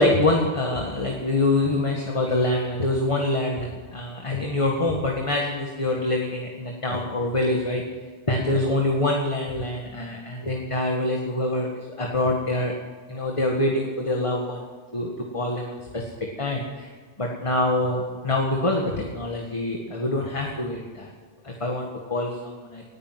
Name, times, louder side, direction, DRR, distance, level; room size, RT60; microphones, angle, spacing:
voice 1, 0.0-7.8 8.3-12.7 13.1-14.6 14.9-16.0 16.4-16.9 17.2-21.1 21.4-22.8, left 2 dB, 30° left, 0 dB, 1.7 m, -25 dB
19.0 x 10.0 x 6.0 m, 1.5 s
omnidirectional pair, 1.2 m